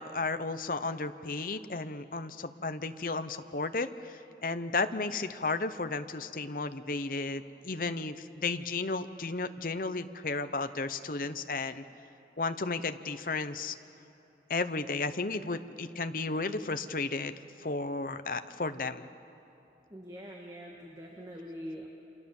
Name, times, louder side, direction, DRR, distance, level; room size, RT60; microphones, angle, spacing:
voice 1, 0.0-11.8 12.4-13.8 14.5-17.3 17.6-19.1, left 3 dB, 50° left, 10 dB, 0.9 m, -33 dB
voice 2, 19.9-21.9, equal, 20° right, -1 dB, 1.9 m, -43 dB
28.5 x 26.0 x 7.2 m, 2.9 s
head